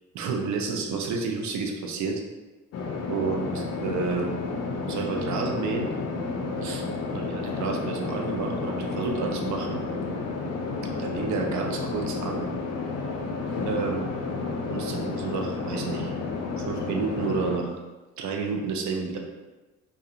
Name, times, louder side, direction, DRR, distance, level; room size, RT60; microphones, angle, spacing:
voice 1, 0.1-2.2 3.1-4.3 4.8-5.9 6.6-9.8 10.9-12.5 13.7-14.0 14.7-16.1 16.6-17.8 18.2-19.2, right 4 dB, 70° right, 2 dB, 0.5 m, -30 dB
sound 1, 2.7-17.6, left 3 dB, 55° left, 0.5 m, -31 dB
2.4 x 2.3 x 2.8 m, 1.2 s
cardioid pair, 90°, 30 cm